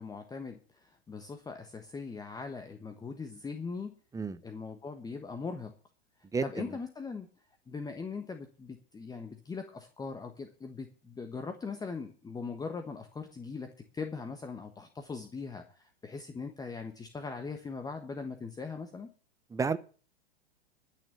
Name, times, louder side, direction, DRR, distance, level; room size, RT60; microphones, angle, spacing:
voice 1, 0.0-3.9 4.4-5.7 6.4-7.3 7.7-19.1, left 4 dB, 10° left, 1.2 m, -40 dB
voice 2, 6.3-6.7 19.5-19.8, right 5 dB, 10° right, 0.8 m, -31 dB
12.0 x 6.7 x 8.3 m
hypercardioid pair, 105°, 31 cm